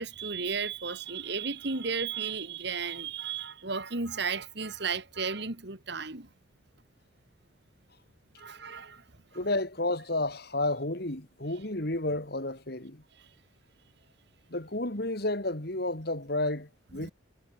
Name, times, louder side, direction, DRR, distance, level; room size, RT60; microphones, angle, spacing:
voice 1, 0.0-6.3 8.4-9.0 13.2-13.3 16.9-17.1, right 5 dB, 55° right, 2.2 m, -34 dB
voice 2, 9.3-13.0 14.5-17.1, left 2 dB, 50° left, 2.7 m, -31 dB
head